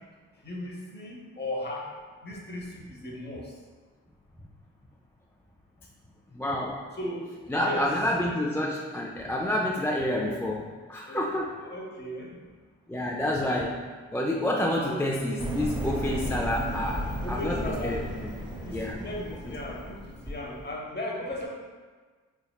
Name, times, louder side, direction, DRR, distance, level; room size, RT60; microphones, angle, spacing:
voice 1, 0.4-1.9 2.2-3.5 6.9-7.9 11.1-11.3 11.6-12.4 14.8-15.1 17.2-18.0 18.7-21.5, left 1 dB, 30° left, -1 dB, 0.9 m, -36 dB
voice 2, 6.3-6.8 7.5-11.6 12.9-13.8 14.1-17.6 17.8-18.0 18.7-19.0, left 1 dB, 5° left, -3 dB, 0.4 m, -28 dB
sound 1, 15.4-20.7, right 1 dB, 15° right, 0.8 m, -34 dB
3.5 x 3.4 x 2.3 m, 1.5 s
supercardioid pair, 40°, 36 cm